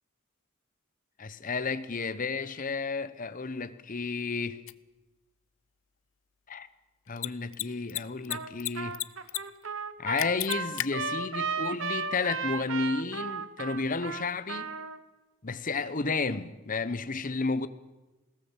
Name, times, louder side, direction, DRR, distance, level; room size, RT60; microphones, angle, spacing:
voice 1, 1.2-4.6 6.5-6.7 7.1-9.0 10.0-14.7 15.4-17.7, left 4 dB, 40° left, 1.0 m, -32 dB
Mechanisms, 4.7-4.8 7.1-7.3 7.5-7.6 7.9-8.7 8.9-9.4 9.7-9.8 10.2-10.9, left 15 dB, 70° left, 0.6 m, -31 dB
Trumpet, 8.3-8.5 8.8-15.0, right 5 dB, 70° right, 1.2 m, -34 dB
21.0 x 18.0 x 7.4 m
head